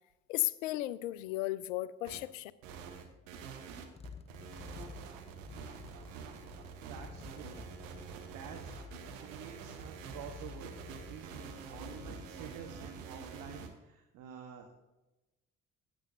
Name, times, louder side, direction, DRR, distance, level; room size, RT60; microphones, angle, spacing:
voice 1, 0.3-2.5, left 16 dB, 70° left, 19 dB, 0.6 m, -35 dB
sound 1, 2.0-2.2 2.6-13.7, right 6 dB, 70° right, 1.3 m, -47 dB
sound 2, 2.7-13.2, left 6 dB, 15° left, 0.4 m, -52 dB
voice 2, 6.9-7.5 8.3-8.7 9.2-11.4 11.7-14.7, right 8 dB, 55° right, 3 dB, 1.4 m, -49 dB
16.5 x 8.8 x 2.8 m, 1.0 s
figure-of-eight pair, 50°, 40 cm